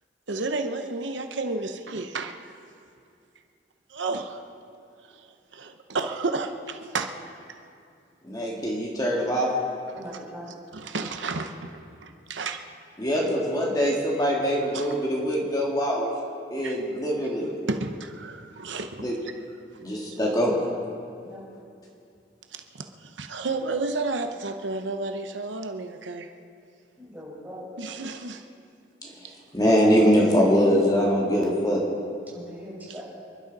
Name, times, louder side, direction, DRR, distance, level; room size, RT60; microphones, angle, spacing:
voice 1, 0.3-2.4 3.9-4.4 5.1-5.3 5.5-7.1 9.9-10.2 10.7-11.7 12.0-12.6 14.7-14.8 16.6-16.8 17.4-19.1 22.5-26.3 27.8-28.4, right 3 dB, 90° right, 6 dB, 0.9 m, -32 dB
voice 2, 8.2-9.5 13.0-16.1 16.5-17.5 19.0-19.2 19.8-20.6 29.0-31.8, equal, 20° left, -3 dB, 2.0 m, -23 dB
voice 3, 9.9-10.5 21.3-21.4 27.0-27.6 32.3-33.0, equal, 10° right, -6 dB, 4.9 m, -41 dB
28.0 x 11.5 x 4.1 m, 2.5 s
head